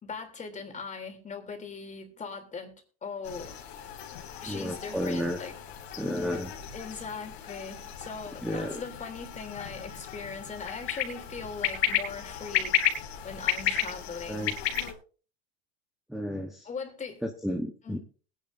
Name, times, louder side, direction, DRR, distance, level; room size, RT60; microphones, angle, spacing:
voice 1, 0.0-2.7 3.0-3.5 4.4-5.5 6.7-12.8 13.2-14.5 16.6-17.2 17.8-18.0, left 5 dB, 25° left, 4 dB, 3.2 m, -40 dB
sound 1, 3.2-14.9, left 10 dB, 80° left, 2.9 m, -33 dB
voice 2, 4.5-5.4 6.0-6.5 8.4-8.8 14.3-14.6 16.1-16.7 17.2-18.0, equal, ahead, 4 dB, 1.1 m, -32 dB
21.0 x 10.0 x 2.7 m, 0.38 s
supercardioid pair, 110°, 31 cm